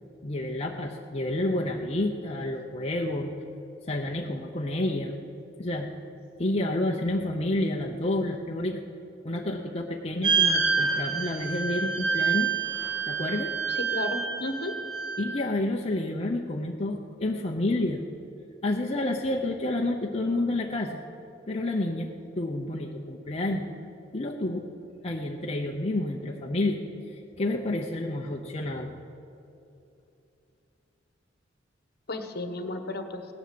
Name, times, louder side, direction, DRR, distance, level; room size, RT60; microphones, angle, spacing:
voice 1, 0.2-3.3 3.9-5.1 5.6-5.9 6.4-8.8 9.2-12.5 13.1-13.6 15.2-18.0 18.6-21.0 21.5-23.7 24.1-24.7 25.0-29.0, left 1 dB, 30° left, 0 dB, 0.8 m, -29 dB
sound 1, 10.2-15.2, right 5 dB, 85° right, 2.4 m, -27 dB
voice 2, 13.7-14.8 32.1-33.3, left 2 dB, 55° left, 7 dB, 1.3 m, -33 dB
17.5 x 10.5 x 7.7 m, 2.7 s
head